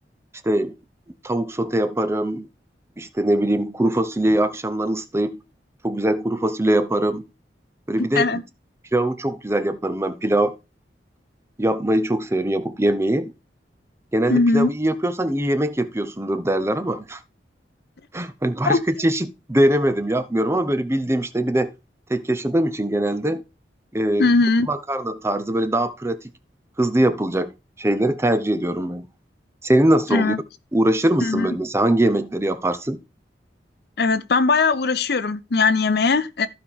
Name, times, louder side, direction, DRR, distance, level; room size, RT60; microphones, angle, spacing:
voice 1, 1.2-2.5 3.0-5.4 5.8-7.2 7.9-8.3 8.9-10.5 11.6-13.3 14.1-17.2 18.1-21.7 22.1-23.4 23.9-24.3 24.7-26.2 26.8-27.5 27.8-29.1 29.6-30.3 30.7-33.0, right 1 dB, 15° right, 0.6 m, -22 dB
voice 2, 14.3-14.7 18.6-18.8 24.2-24.7 30.1-30.4 31.2-31.5 34.0-36.5, left 3 dB, 60° left, 0.6 m, -19 dB
14.5 x 4.9 x 3.6 m
head